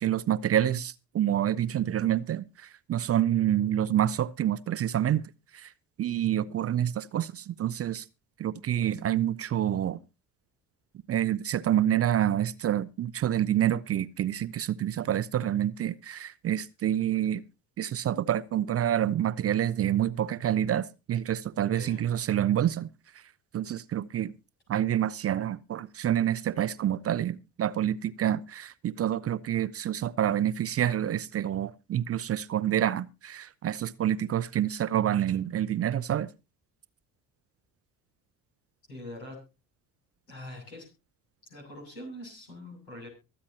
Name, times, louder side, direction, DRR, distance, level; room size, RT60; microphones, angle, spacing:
voice 1, 0.0-2.4 2.9-5.2 5.5-5.7 6.0-8.0 8.4-10.0 11.1-17.4 17.8-22.9 23.5-24.3 24.7-36.3, right 11 dB, 30° right, 0.5 m, -27 dB
voice 2, 21.7-22.1 38.9-39.4 40.3-40.9 41.5-43.1, left 1 dB, 85° left, 7.2 m, -43 dB
24.0 x 8.4 x 2.8 m
figure-of-eight pair, 55°, 48 cm